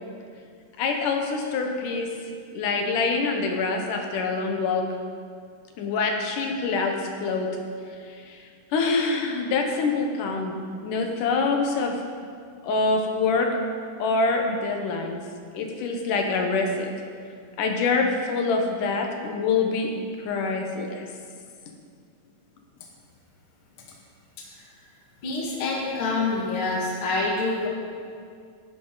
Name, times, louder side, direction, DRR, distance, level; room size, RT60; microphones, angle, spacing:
voice 1, 0.8-2.1 2.5-4.9 5.8-7.5 8.0-10.6 10.8-12.0 12.6-13.6 14.0-15.2 15.5-16.9 17.6-19.9 20.2-21.0, left 4 dB, 80° left, 3 dB, 2.8 m, -25 dB
voice 2, 25.2-27.7, left 3 dB, 45° left, -3 dB, 2.5 m, -26 dB
16.0 x 11.0 x 4.0 m, 2.2 s
omnidirectional pair, 3.7 m